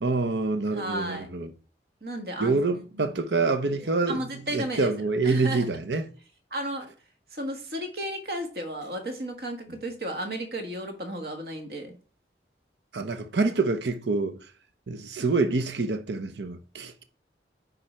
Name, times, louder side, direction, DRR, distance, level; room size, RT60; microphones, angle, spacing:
voice 1, 0.0-1.5 2.4-6.1 12.9-14.4 14.9-17.0, right 3 dB, 80° right, 0.8 m, -26 dB
voice 2, 0.7-1.3 2.0-3.1 3.8-4.9 5.2-5.7 6.5-6.9 7.3-12.0, right 1 dB, 60° right, 1.5 m, -34 dB
9.8 x 3.9 x 4.4 m
head